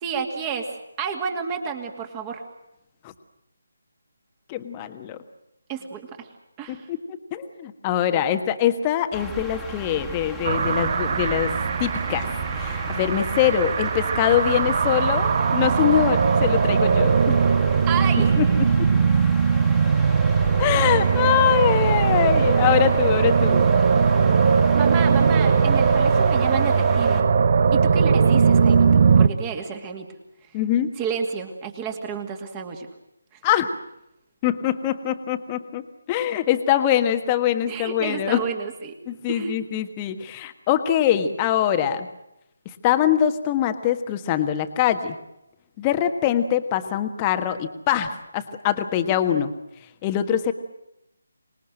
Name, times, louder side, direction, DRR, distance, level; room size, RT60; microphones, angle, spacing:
voice 1, 0.0-0.7 1.0-2.4 5.7-6.3 6.6-6.8 17.9-18.4 24.7-27.2 27.7-30.1 31.0-32.9 37.7-39.0 39.3-39.5, right 6 dB, 20° right, 5 dB, 2.4 m, -30 dB
voice 2, 4.5-5.2 6.7-7.0 7.3-11.5 11.8-12.3 12.5-17.4 18.4-18.5 18.8-18.9 20.6-23.7 30.5-30.9 33.4-33.7 34.4-38.4 39.1-42.1 42.8-45.2 45.8-49.5 50.0-50.5, left 10 dB, 20° left, 9 dB, 1.5 m, -23 dB
sound 1, 9.1-27.2, right 1 dB, ahead, 2.2 m, -37 dB
sound 2, 10.4-29.3, right 5 dB, 40° right, 0.9 m, -19 dB
25.5 x 20.5 x 7.8 m, 0.86 s
figure-of-eight pair, 150°, 0 cm